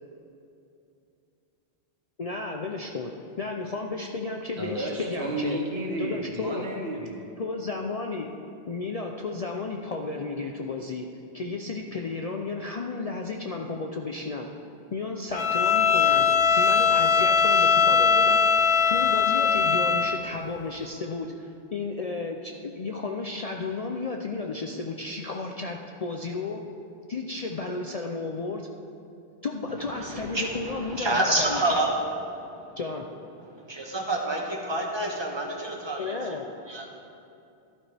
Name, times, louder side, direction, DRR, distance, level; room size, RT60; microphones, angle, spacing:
voice 1, 2.2-5.6 6.0-6.6 7.4-8.3 8.7-11.0 11.3-14.5 14.9-26.6 27.1-28.7 29.4-31.6 32.8-33.0 36.0-36.4, left 3 dB, 45° left, 1 dB, 0.5 m, -33 dB
voice 2, 4.6-7.3, right 1 dB, 65° right, 0 dB, 1.6 m, -32 dB
Bowed string instrument, 15.3-20.2, left 6 dB, 65° left, 0.9 m, -21 dB
voice 3, 30.0-32.0 32.6-32.7 33.7-36.2 36.7-36.9, right 2 dB, 25° right, 0 dB, 1.4 m, -28 dB
13.5 x 12.0 x 3.4 m, 2.7 s
omnidirectional pair, 1.1 m